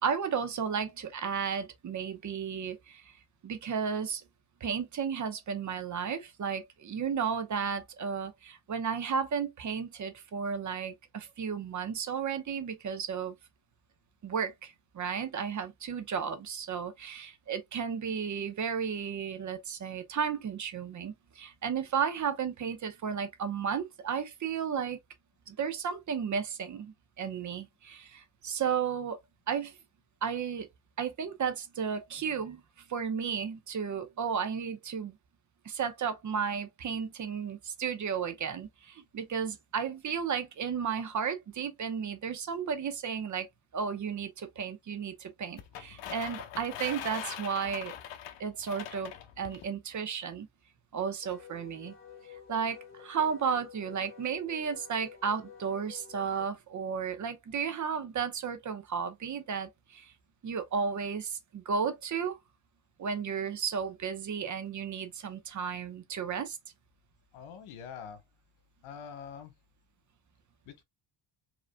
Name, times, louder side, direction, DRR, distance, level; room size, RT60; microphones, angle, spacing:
voice 1, 0.0-3.2 3.4-4.2 4.6-13.4 14.2-25.0 25.5-29.2 29.5-29.8 30.2-30.7 31.0-32.6 32.9-35.2 35.6-43.5 43.7-47.9 48.4-50.5 50.9-51.9 52.3-60.1 60.4-62.4 63.0-66.6, right 6 dB, 35° right, 0.9 m, -33 dB
sound 1, 45.6-49.7, left 10 dB, 65° left, 1.0 m, -42 dB
Wind instrument woodwind instrument, 51.2-56.5, left 8 dB, 25° left, 1.2 m, -50 dB
voice 2, 67.3-68.2 68.8-69.5 70.7-70.8, left 7 dB, 85° left, 1.4 m, -44 dB
5.1 x 3.1 x 2.2 m
cardioid pair, 135°, 48 cm